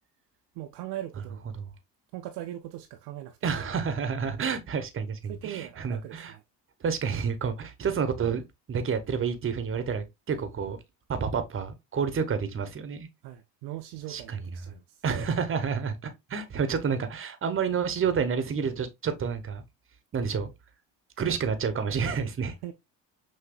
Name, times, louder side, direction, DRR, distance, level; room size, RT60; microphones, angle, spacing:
voice 1, 0.5-1.5 2.1-3.5 5.3-6.4 13.2-15.0 22.6-22.7, right 13 dB, 55° right, 0.5 m, -40 dB
voice 2, 3.4-6.3 6.8-8.4 8.7-10.8 11.1-13.1 14.1-14.4 14.7-14.8 15.0-19.6 20.1-20.5 21.2-22.5, right 6 dB, 25° right, 0.8 m, -29 dB
5.8 x 2.6 x 2.2 m
hypercardioid pair, 55°, 49 cm